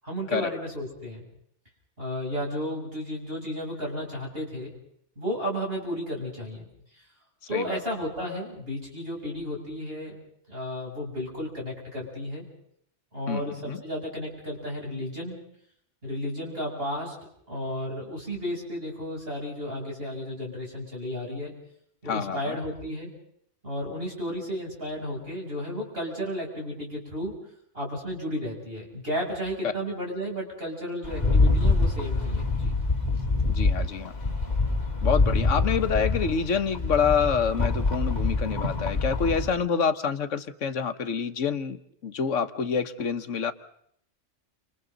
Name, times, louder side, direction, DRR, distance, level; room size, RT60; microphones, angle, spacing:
voice 1, 0.0-1.3 2.0-4.7 5.2-6.7 7.5-10.2 10.5-12.4 13.1-15.4 16.0-17.1 17.5-21.5 22.0-23.1 23.6-27.4 27.7-32.8, equal, 55° right, -3 dB, 8.3 m, -33 dB
voice 2, 13.3-13.8 22.1-22.6 29.6-29.7 33.5-34.1 35.0-43.5, left 6 dB, 90° left, 10 dB, 1.4 m, -27 dB
Rattle, 31.0-39.5, left 3 dB, 35° left, 2.9 m, -25 dB
30.0 x 28.5 x 4.0 m, 0.70 s
omnidirectional pair, 1.2 m